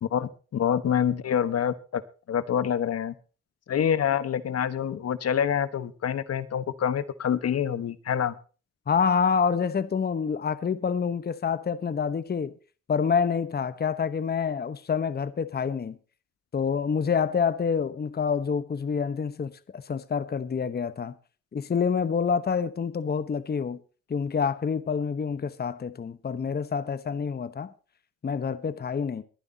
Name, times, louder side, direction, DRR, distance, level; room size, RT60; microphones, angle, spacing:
voice 1, 0.0-2.0 2.3-3.1 3.7-8.3, left 8 dB, 55° left, 1.4 m, -26 dB
voice 2, 8.9-12.5 12.9-16.0 16.5-21.1 21.5-23.8 24.1-27.7 28.2-29.2, left 6 dB, 30° left, 1.1 m, -27 dB
23.0 x 9.8 x 2.9 m
cardioid pair, 90°, 30 cm